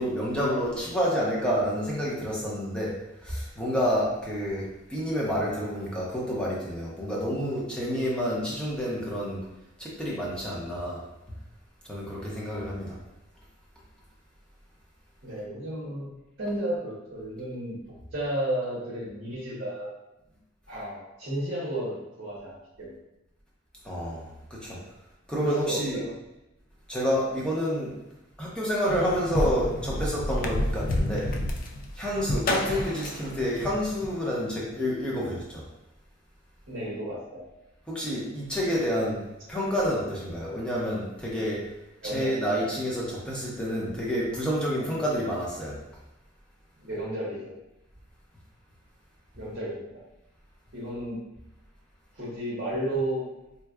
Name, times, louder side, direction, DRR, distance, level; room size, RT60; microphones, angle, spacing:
voice 1, 0.0-2.9 3.2-9.4 9.8-11.0 11.8-13.0 23.8-24.8 25.3-26.0 26.9-27.9 28.4-31.3 32.0-35.6 37.9-39.2 39.5-41.6 42.0-45.7, equal, 5° left, -6 dB, 0.8 m, -29 dB
voice 2, 15.2-16.1 16.4-17.8 18.1-19.9 20.7-23.0 25.4-26.1 36.7-37.5 42.0-42.6 46.8-47.5 49.4-49.9 50.7-51.2 52.1-53.3, right 1 dB, 55° right, -6 dB, 0.9 m, -32 dB
sound 1, 28.9-34.1, left 1 dB, 45° left, 0.3 m, -30 dB
4.3 x 2.3 x 2.3 m, 0.95 s
head